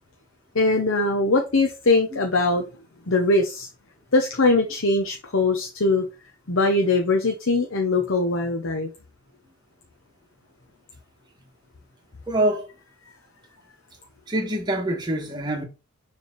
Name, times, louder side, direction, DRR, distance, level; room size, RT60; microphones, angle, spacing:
voice 1, 0.5-2.7 3.1-3.7 4.1-6.1 6.5-8.9, left 2 dB, 60° left, 0.9 m, -21 dB
voice 2, 12.3-12.7 14.3-15.6, right 1 dB, 20° right, 1.4 m, -25 dB
6.7 x 3.5 x 4.7 m
head